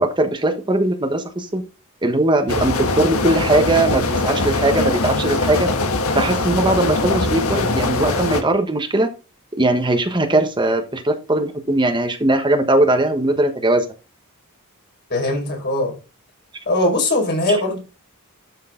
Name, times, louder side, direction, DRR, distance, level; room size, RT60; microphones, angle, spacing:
voice 1, 0.0-1.6 2.0-5.7 6.1-9.1 9.6-13.8 17.5-17.6, right 2 dB, 20° right, 1.3 m, -19 dB
sound 1, 2.5-8.4, left 2 dB, 75° left, 1.5 m, -21 dB
voice 2, 15.1-15.9 16.7-17.8, left 1 dB, 50° left, 5.5 m, -20 dB
12.5 x 6.6 x 3.9 m
head